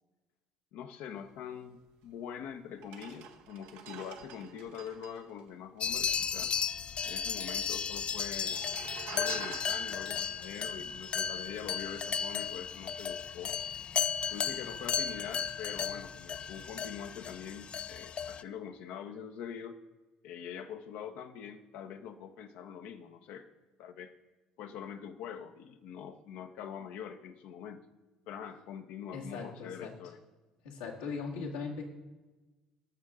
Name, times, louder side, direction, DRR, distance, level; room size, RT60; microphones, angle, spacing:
voice 1, 0.7-6.5 7.0-8.6 9.1-13.5 14.3-19.8 20.2-23.5 23.8-24.1 24.6-27.8 28.3-30.2, left 8 dB, 65° left, 7 dB, 0.9 m, -44 dB
sound 1, 2.1-2.2 2.7-6.4 6.7-6.8 7.0-7.7 8.3-11.8 12.3-12.5, right 8 dB, 70° right, 0.9 m, -48 dB
sound 2, 5.8-18.4, left 7 dB, 40° left, 0.5 m, -35 dB
voice 2, 29.1-29.9 30.6-31.8, left 4 dB, 85° left, -2 dB, 1.9 m, -39 dB
19.0 x 6.5 x 3.6 m, 1.2 s
hypercardioid pair, 60°, 3 cm